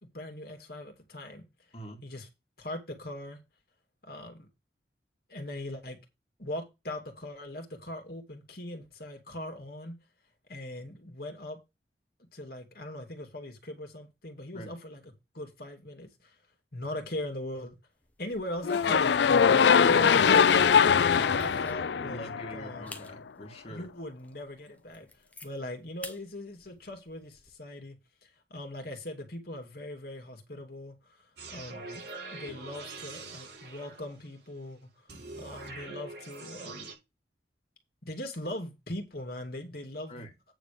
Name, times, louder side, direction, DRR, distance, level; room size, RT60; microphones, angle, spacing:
voice 1, 0.0-1.4 2.0-2.3 2.6-3.4 4.0-4.5 5.3-6.0 6.4-9.9 10.5-11.6 12.3-16.3 16.7-17.8 18.2-20.4 21.3-22.9 23.7-25.1 25.4-28.0 28.2-32.1 32.3-34.9 35.4-36.9 38.0-40.2, left 1 dB, 55° left, 2.5 m, -40 dB
sound 1, 18.0-18.7 19.1-19.3 19.8-21.9 22.4-22.5 22.9-23.1 23.6-23.7 24.2-24.3 24.7-25.5 26.0-26.2 26.6-27.5, left 1 dB, 10° left, 1.2 m, -46 dB
sound 2, 18.6-22.8, left 6 dB, 75° left, 0.4 m, -22 dB
voice 2, 19.4-21.6 22.0-23.9 40.1-40.3, left 1 dB, 35° left, 2.4 m, -42 dB
sound 3, 31.4-34.3 35.1-36.9, right 3 dB, 70° right, 6.0 m, -44 dB
9.2 x 4.1 x 6.8 m
head